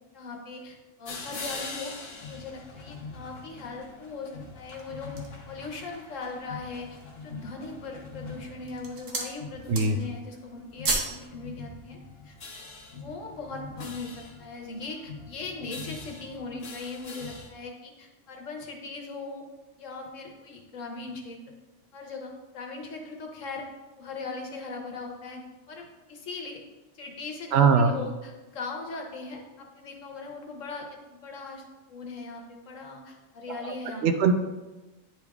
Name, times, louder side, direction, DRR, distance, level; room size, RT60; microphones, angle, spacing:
voice 1, 0.1-1.9 2.2-5.1 5.5-12.0 12.2-12.4 12.9-19.4 19.8-21.4 21.9-23.7 24.0-25.4 25.7-26.6 26.9-31.6 31.9-34.0, left 3 dB, 80° left, 2 dB, 1.3 m, -39 dB
sound 1, 1.0-17.5, left 4 dB, 55° left, 1.2 m, -43 dB
sound 2, 4.5-5.5 6.1-6.2 6.6-7.2 7.9-8.2 8.6-9.4 9.6-10.2 10.4-11.2 11.5-11.7, right 3 dB, 85° right, 1.4 m, -32 dB
voice 2, 27.5-27.9 34.0-34.3, right 5 dB, 65° right, 7 dB, 0.8 m, -20 dB
9.7 x 3.5 x 3.5 m, 1.1 s
omnidirectional pair, 1.3 m